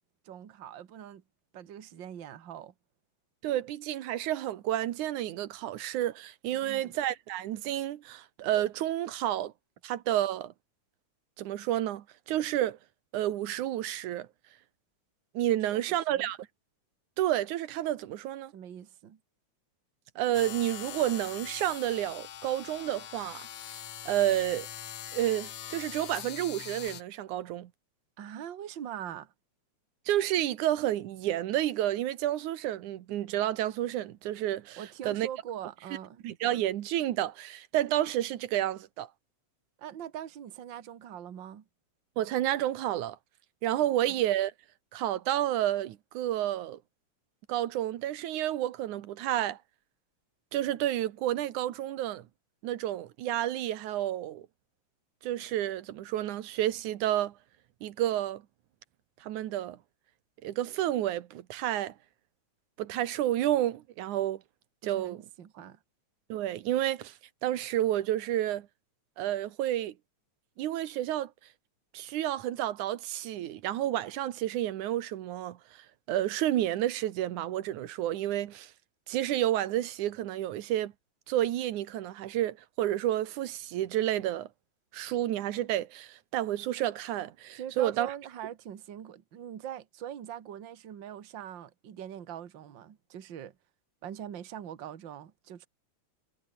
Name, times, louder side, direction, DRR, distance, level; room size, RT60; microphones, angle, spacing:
voice 1, 0.2-1.2 1.5-2.7 6.5-6.9 15.7-15.8 16.1-16.3 18.5-19.2 28.2-29.3 34.8-36.2 39.8-41.6 44.0-44.2 64.8-65.8 87.6-93.6 94.0-95.7, right 10 dB, 45° right, 2.0 m, -42 dB
voice 2, 3.4-9.5 9.8-10.5 11.4-12.8 13.1-14.3 15.3-16.4 17.2-18.5 20.2-23.5 24.1-24.7 25.1-27.7 30.1-35.3 36.2-39.1 42.2-43.2 43.6-44.5 44.9-46.8 47.5-49.6 50.5-52.2 52.6-54.4 55.2-57.3 57.8-58.4 59.2-59.8 60.4-61.9 62.8-64.4 64.8-65.2 66.3-67.1 67.4-68.7 69.2-69.9 70.6-71.3 71.9-75.6 76.1-78.7 79.1-80.9 81.3-84.5 84.9-88.1, right 13 dB, 90° right, 2.7 m, -30 dB
sound 1, 20.3-27.0, left 11 dB, 65° left, 2.5 m, -42 dB
omnidirectional pair, 3.4 m